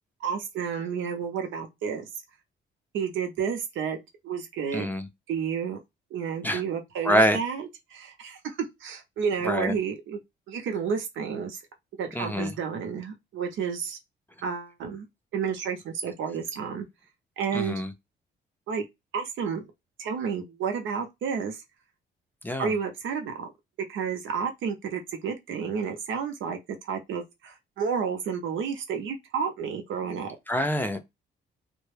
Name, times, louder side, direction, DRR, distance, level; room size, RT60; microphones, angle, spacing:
voice 1, 0.2-2.1 2.9-4.0 4.2-4.9 5.3-5.8 6.1-10.2 10.5-11.6 12.0-14.0 14.4-15.1 15.3-16.9 17.4-17.8 18.7-18.9 19.1-19.6 20.0-21.6 22.6-23.5 23.9-30.4, right 6 dB, 75° right, 0.7 m, -31 dB
voice 2, 4.7-5.1 6.4-6.6 7.0-7.4 9.4-9.7 12.1-12.5 17.5-17.9 22.4-22.7 30.5-31.0, equal, 10° left, 0.5 m, -25 dB
2.2 x 2.1 x 3.1 m
cardioid pair, 90°, 20 cm